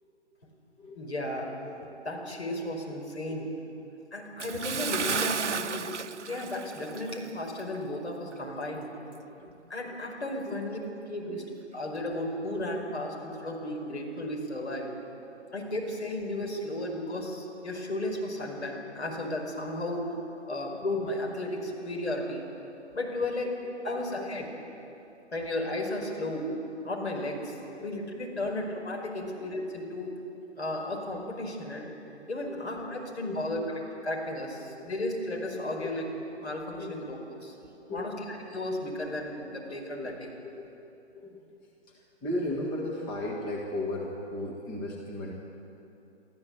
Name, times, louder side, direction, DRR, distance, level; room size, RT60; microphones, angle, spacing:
voice 1, 0.9-1.5 2.0-3.5 4.1-5.9 6.2-8.9 9.7-10.8 11.1-11.4 11.7-14.9 15.5-20.1 20.5-22.4 22.9-23.5 23.8-24.5 25.3-26.5 26.8-27.6 27.8-30.1 30.6-31.9 32.3-36.0 36.4-37.5 37.9-40.3, left 1 dB, 65° left, 0 dB, 5.1 m, -34 dB
Bathtub (filling or washing) / Splash splatter, 4.4-7.3 7.6-7.8 8.3-8.4, right 5 dB, 80° right, 0.6 m, -33 dB
voice 2, 23.9-24.3 27.7-28.0 28.4-28.5 29.2-29.3 32.4-32.7 33.2-33.7 35.8-35.9 36.8-36.9 37.6-38.2 40.0-40.1 40.4-40.7 41.1-45.3, left 1 dB, 10° left, -3 dB, 1.7 m, -37 dB
25.0 x 14.0 x 8.1 m, 2.9 s
figure-of-eight pair, 140°, 35 cm